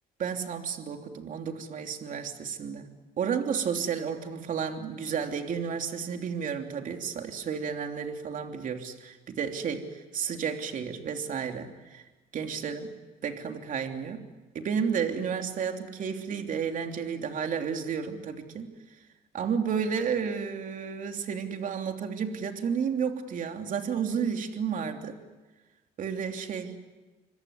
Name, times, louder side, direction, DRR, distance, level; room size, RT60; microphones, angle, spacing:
voice 1, 0.2-2.9 3.2-12.0 12.3-12.9 13.2-14.2 14.5-18.7 19.3-25.2 26.0-26.8, right 6 dB, 50° right, 4 dB, 3.2 m, -32 dB
26.0 x 24.0 x 9.7 m, 1.2 s
cardioid pair, 110°, 17 cm